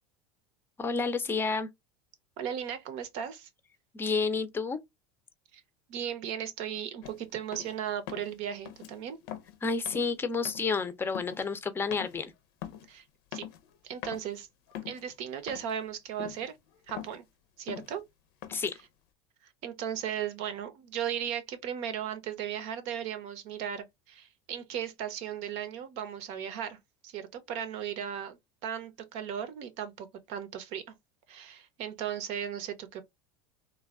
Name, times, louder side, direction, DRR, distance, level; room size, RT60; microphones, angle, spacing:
voice 1, 0.8-1.7 3.9-4.8 9.6-12.3 18.5-18.7, left 4 dB, 20° left, 0.6 m, -30 dB
voice 2, 2.4-3.5 5.5-5.6 5.9-9.2 12.9-13.0 13.3-13.4 13.8-14.5 14.8-16.5 16.9-17.2 17.6-18.0 19.6-26.8 27.0-30.8 31.3-33.0, right 9 dB, 60° right, 0.8 m, -36 dB
sound 1, 7.0-7.2 7.5-7.8 8.1-8.4 8.7-8.9 9.2-9.6 9.9-10.1 10.5-10.8 11.1-11.5 11.9-12.2 12.6-12.9 13.3-13.8 14.0-14.3 14.7-15.1 15.5-15.9 16.2-16.5 16.7-17.2 17.7-18.0 18.4-18.8, left 11 dB, 70° left, 0.6 m, -43 dB
3.3 x 2.2 x 2.3 m
hypercardioid pair, 100°, 12 cm